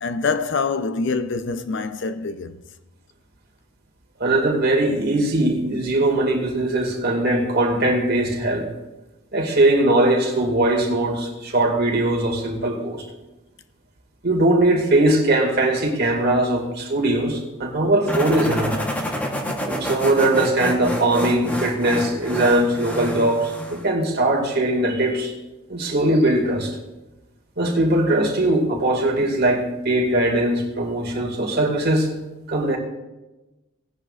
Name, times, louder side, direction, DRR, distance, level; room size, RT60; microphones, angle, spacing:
voice 1, 0.0-2.5, left 4 dB, 55° left, 0.6 m, -25 dB
voice 2, 4.2-8.7 9.3-13.0 14.2-18.7 19.7-25.3 25.7-26.7 27.6-32.1 32.5-32.8, right 1 dB, 50° right, 2.1 m, -20 dB
sound 1, 18.1-23.9, equal, 5° left, 1.1 m, -28 dB
18.0 x 10.5 x 2.5 m
head